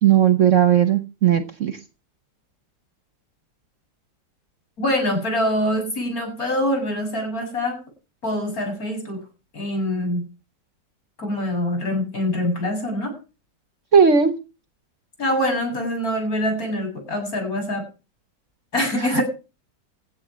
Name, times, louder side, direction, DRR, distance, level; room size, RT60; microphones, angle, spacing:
voice 1, 0.0-1.8 13.9-14.3 19.0-19.2, right 8 dB, 50° right, 10 dB, 1.1 m, -17 dB
voice 2, 4.8-7.8 8.2-9.2 9.5-10.2 11.2-13.1 15.2-17.9 18.7-19.2, left 1 dB, 55° left, 2 dB, 7.9 m, -24 dB
15.5 x 8.1 x 6.2 m, 0.32 s
omnidirectional pair, 1.9 m